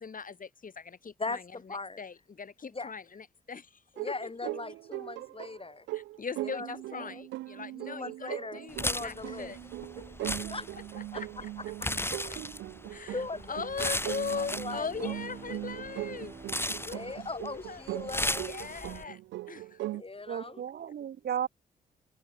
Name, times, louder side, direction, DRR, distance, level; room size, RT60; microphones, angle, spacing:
voice 1, 0.0-3.8 4.1-4.3 5.9-9.6 10.2-10.3 10.9-11.3 12.3-12.4 12.8-16.3 16.9-17.9 18.3-19.2 19.5-19.8, left 5 dB, 45° left, 7.0 m, -40 dB
voice 2, 1.2-2.0 2.7-2.9 4.0-5.9 6.4-7.3 7.8-9.5 9.9-10.2 10.5-10.7 11.1-11.2 13.1-13.6 14.3-15.2 16.9-18.5 20.0-20.6, left 3 dB, 30° left, 5.8 m, -39 dB
sound 1, 4.0-20.0, right 17 dB, 75° right, 1.1 m, -40 dB
sound 2, 8.7-19.0, left 1 dB, 10° left, 7.4 m, -37 dB
Bowed string instrument, 13.6-18.4, right 5 dB, 40° right, 4.9 m, -51 dB
voice 3, 20.2-21.5, right 9 dB, 60° right, 1.5 m, -34 dB
hypercardioid pair, 40°, 19 cm